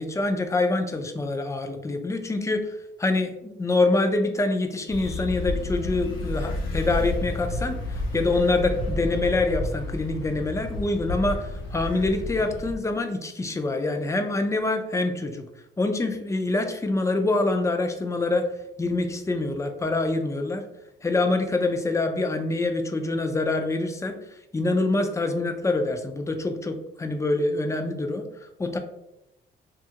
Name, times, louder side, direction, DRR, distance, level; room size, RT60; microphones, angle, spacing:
voice 1, 0.0-15.5 15.8-18.5 18.8-20.6 21.0-24.2 24.5-28.8, left 2 dB, 15° left, 5 dB, 0.4 m, -25 dB
sound 1, 4.9-12.7, left 2 dB, 80° left, 0.7 m, -31 dB
2.7 x 2.4 x 2.8 m, 0.87 s
cardioid pair, 90°, 20 cm